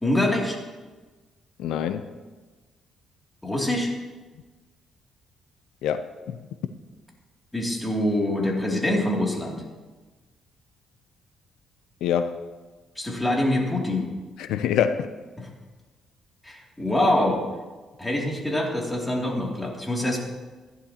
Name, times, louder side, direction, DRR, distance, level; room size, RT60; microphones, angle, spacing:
voice 1, 0.0-0.6 3.4-3.9 7.5-9.6 13.0-14.1 15.4-15.5 16.4-17.4 18.0-20.2, left 1 dB, 10° left, -1 dB, 2.6 m, -25 dB
voice 2, 1.6-2.1 5.8-6.4 12.0-12.4 14.4-15.1, left 8 dB, 90° left, 10 dB, 0.5 m, -25 dB
15.0 x 11.0 x 2.9 m, 1.3 s
cardioid pair, 90°, 0 cm